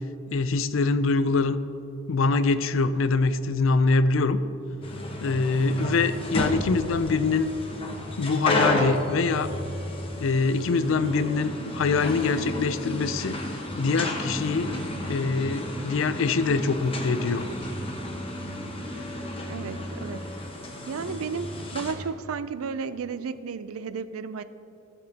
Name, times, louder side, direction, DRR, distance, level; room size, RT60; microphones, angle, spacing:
voice 1, 0.3-1.6 2.1-4.4 5.2-7.5 8.2-9.5 10.2-14.7 15.1-17.4, left 4 dB, 65° left, 13 dB, 0.4 m, -24 dB
sound 1, 4.8-21.9, left 1 dB, 25° left, 1.1 m, -32 dB
voice 2, 19.5-20.5 20.9-24.4, right 5 dB, 85° right, 13 dB, 0.4 m, -33 dB
17.0 x 6.9 x 2.8 m, 2.9 s
head